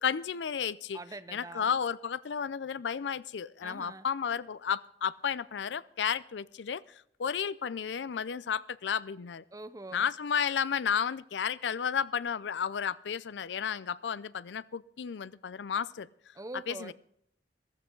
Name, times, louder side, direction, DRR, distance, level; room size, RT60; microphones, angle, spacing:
voice 1, 0.0-1.0 1.3-6.8 7.2-9.4 9.9-16.1 16.7-16.9, left 7 dB, 90° left, 19 dB, 0.5 m, -32 dB
voice 2, 0.9-1.8 3.6-4.1 9.5-10.1 16.3-16.9, right 2 dB, 20° right, 12 dB, 0.6 m, -44 dB
15.5 x 14.5 x 3.8 m, 0.70 s
head